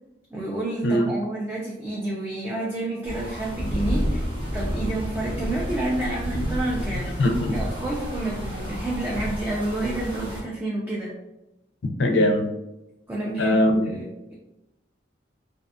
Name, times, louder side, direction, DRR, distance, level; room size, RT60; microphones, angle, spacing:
voice 1, 0.3-4.3 4.5-7.2 7.5-11.1 13.1-14.3, right 1 dB, 10° right, -5 dB, 0.3 m, -29 dB
voice 2, 0.8-1.1 7.2-7.5 12.0-12.5 13.4-13.9, left 1 dB, 65° left, 4 dB, 0.4 m, -20 dB
sound 1, 3.0-10.4, equal, 25° right, 0.8 m, -30 dB
2.5 x 2.3 x 2.4 m, 0.92 s
head